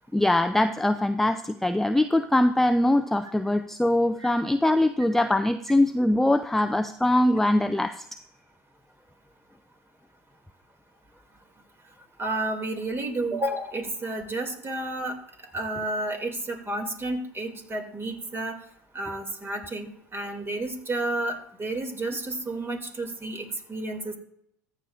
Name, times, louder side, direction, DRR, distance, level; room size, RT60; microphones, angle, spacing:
voice 1, 0.1-8.2, left 1 dB, 5° left, 8 dB, 0.4 m, -22 dB
voice 2, 12.2-15.2 15.5-18.6 18.9-24.2, right 2 dB, 25° right, 4 dB, 2.5 m, -31 dB
14.0 x 8.5 x 2.5 m, 0.70 s
hypercardioid pair, 80°, 9 cm